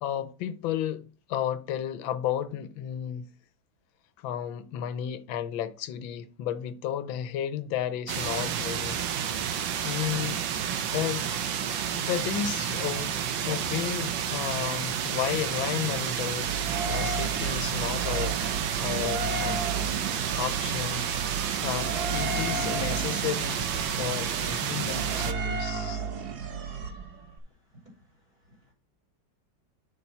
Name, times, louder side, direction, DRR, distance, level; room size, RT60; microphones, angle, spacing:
voice 1, 0.0-3.3 4.2-9.0 9.8-10.4 10.9-11.2 11.9-13.1 13.4-18.4 18.8-19.6 20.3-26.0, left 10 dB, 80° left, 1.5 m, -33 dB
sound 1, 8.1-25.3, right 8 dB, 75° right, 1.6 m, -30 dB
sound 2, 16.5-27.4, right 4 dB, 60° right, 1.5 m, -33 dB
voice 2, 27.7-28.7, equal, 25° right, 3.9 m, -59 dB
6.8 x 6.2 x 5.5 m
omnidirectional pair, 2.1 m